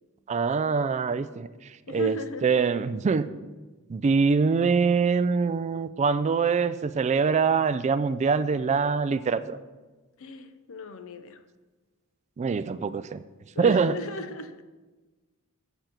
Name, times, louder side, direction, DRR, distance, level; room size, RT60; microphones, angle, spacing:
voice 1, 0.3-2.2 2.4-3.3 3.9-9.6 12.4-13.2 13.6-13.9, right 5 dB, 30° right, 0.3 m, -24 dB
voice 2, 1.9-2.7 10.2-11.4 13.5-14.6, left 1 dB, 65° left, 0.7 m, -37 dB
7.8 x 6.8 x 5.8 m
head